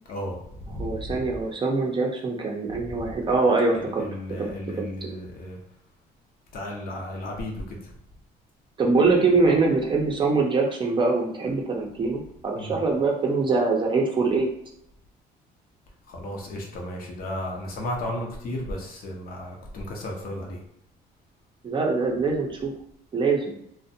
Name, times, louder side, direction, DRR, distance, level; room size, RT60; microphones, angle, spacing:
voice 1, 0.1-1.3 2.7-3.0 3.7-5.6 6.5-7.9 12.5-12.8 16.1-20.6, left 1 dB, 60° left, 0 dB, 0.7 m, -34 dB
voice 2, 0.8-4.1 4.4-4.5 4.8-4.9 8.8-14.5 21.6-22.7 23.1-23.5, right 3 dB, 30° right, 0 dB, 0.5 m, -23 dB
2.4 x 2.1 x 2.6 m, 0.73 s
cardioid pair, 110°, 17 cm